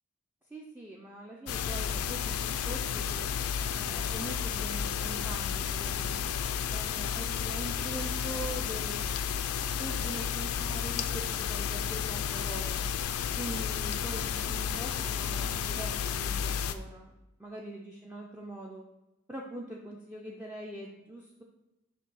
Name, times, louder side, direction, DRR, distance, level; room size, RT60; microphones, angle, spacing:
voice 1, 0.5-3.3 3.7-6.3 6.7-9.1 9.8-12.9 13.4-17.1 17.4-18.9 19.3-21.4, right 1 dB, 10° right, -2 dB, 0.4 m, -43 dB
sound 1, 1.5-16.7, left 8 dB, 75° left, 0.4 m, -32 dB
6.7 x 2.7 x 5.4 m, 0.99 s
head